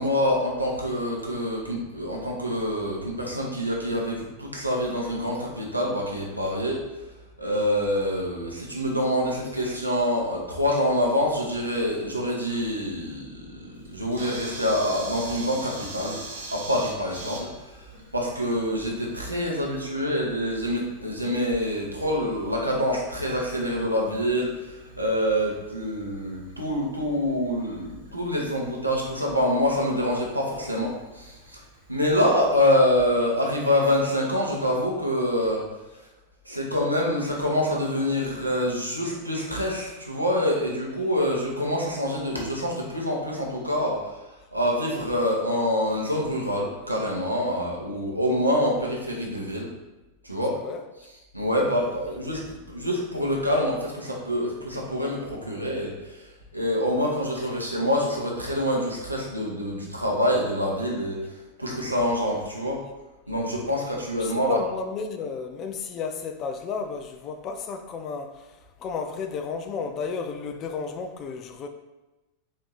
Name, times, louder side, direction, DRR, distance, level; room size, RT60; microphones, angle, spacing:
voice 1, 0.0-6.8 7.4-16.2 16.5-31.6 31.9-35.6 36.4-44.2 44.5-49.7 50.2-50.5 51.3-52.4 52.7-62.8 63.3-64.6, equal, 85° right, 0.9 m, -26 dB
Camera, 13.7-33.1, right 2 dB, 70° right, 1.4 m, -44 dB
voice 2, 64.2-68.5 68.8-71.7, left 5 dB, 35° left, 0.4 m, -33 dB
4.2 x 2.8 x 4.0 m
figure-of-eight pair, 90°, 0 cm